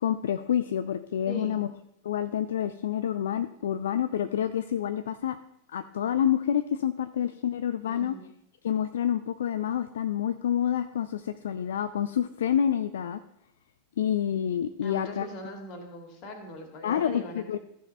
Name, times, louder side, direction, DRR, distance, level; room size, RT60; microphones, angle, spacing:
voice 1, 0.0-1.7 2.0-5.4 5.7-8.1 8.6-13.2 14.0-15.3 16.8-17.6, left 9 dB, 60° left, 11 dB, 0.4 m, -28 dB
voice 2, 1.3-1.6 7.8-8.3 14.8-17.4, equal, 40° left, 4 dB, 2.1 m, -40 dB
14.0 x 5.6 x 4.2 m, 0.77 s
figure-of-eight pair, 90°, 0 cm